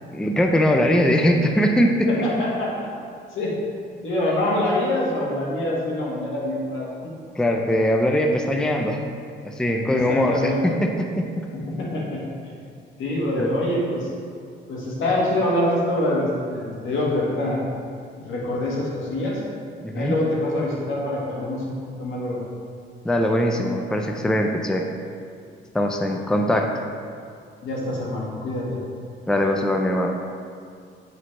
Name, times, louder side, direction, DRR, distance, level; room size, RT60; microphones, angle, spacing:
voice 1, 0.1-2.1 7.4-9.0 9.4-11.5 13.3-13.5 19.8-20.2 23.0-24.9 25.7-26.7 29.3-30.2, equal, 5° left, 2 dB, 0.5 m, -21 dB
voice 2, 2.1-2.9 3.3-3.6 4.0-6.9 9.9-10.6 11.5-12.6 13.0-14.1 14.7-17.6 18.2-19.4 19.9-22.4 27.6-28.8, left 1 dB, 80° left, -4 dB, 1.6 m, -25 dB
8.7 x 4.1 x 3.2 m, 2.2 s
cardioid pair, 90°, 20 cm